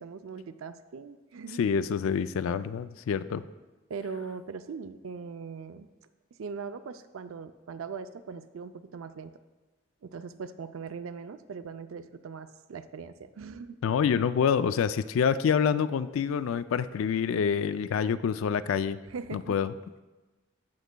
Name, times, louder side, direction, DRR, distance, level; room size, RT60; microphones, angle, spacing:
voice 1, 0.0-1.6 3.9-5.9 6.4-9.3 10.0-13.8 19.1-19.6, right 5 dB, 80° right, 11 dB, 0.4 m, -40 dB
voice 2, 1.6-3.4 13.8-19.0 19.3-19.7, left 7 dB, 75° left, 14 dB, 0.3 m, -27 dB
14.5 x 6.1 x 2.2 m, 1.2 s
head